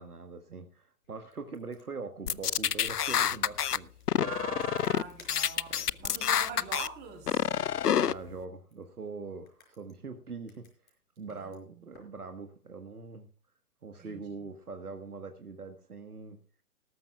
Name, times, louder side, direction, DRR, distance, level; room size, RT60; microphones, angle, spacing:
voice 1, 0.0-4.3 5.7-5.9 8.0-10.6 11.2-13.3 13.8-16.4, right 4 dB, 75° right, 7 dB, 1.5 m, -43 dB
sound 1, 1.0-12.2, left 4 dB, 65° left, 5.2 m, -61 dB
sound 2, 2.3-3.8 4.1-5.0 5.3-6.9 7.3-8.1, left 9 dB, 85° left, 0.6 m, -27 dB
voice 2, 4.2-7.5 11.4-11.9 14.0-14.2, right 7 dB, 20° right, 1 dB, 5.8 m, -43 dB
19.0 x 12.5 x 2.3 m, 0.39 s
figure-of-eight pair, 125°, 45 cm